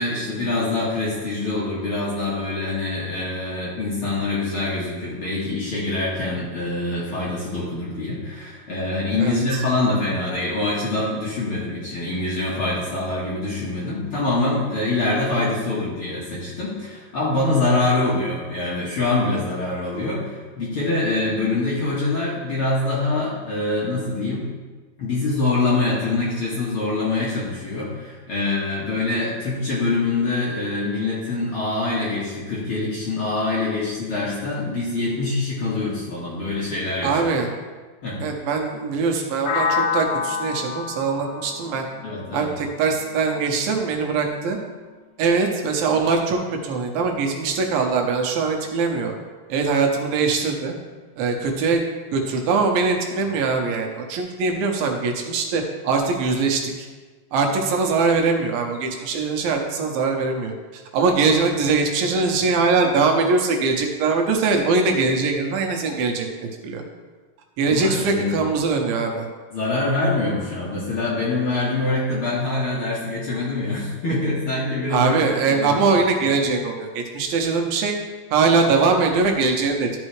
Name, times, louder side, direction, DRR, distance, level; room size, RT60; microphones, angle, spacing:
voice 1, 0.0-24.4 25.0-37.2 38.0-38.2 42.0-42.5 67.7-68.3 69.5-75.2 75.5-75.7, left 2 dB, 50° left, -7 dB, 1.7 m, -24 dB
voice 2, 37.0-37.5 38.2-41.9 42.3-44.6 45.2-49.1 49.5-50.7 51.2-51.8 52.1-56.9 57.3-66.8 67.6-69.3 74.9-78.0 78.3-80.0, right 4 dB, 85° right, 2 dB, 2.7 m, -22 dB
sound 1, 39.5-43.3, left 5 dB, 80° left, 2.6 m, -28 dB
12.5 x 5.4 x 3.2 m, 1.4 s
omnidirectional pair, 4.1 m